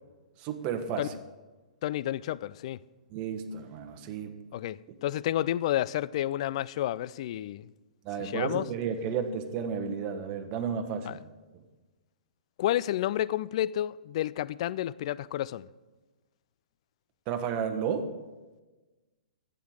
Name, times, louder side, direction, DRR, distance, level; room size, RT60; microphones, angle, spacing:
voice 1, 0.4-1.1 3.1-4.3 8.0-11.2 17.3-18.1, right 7 dB, 35° right, 1.2 m, -32 dB
voice 2, 1.8-2.8 4.5-7.7 8.2-8.7 11.1-11.2 12.6-15.7, left 13 dB, 50° left, 0.3 m, -30 dB
11.5 x 9.1 x 4.9 m
hypercardioid pair, 120°, 4 cm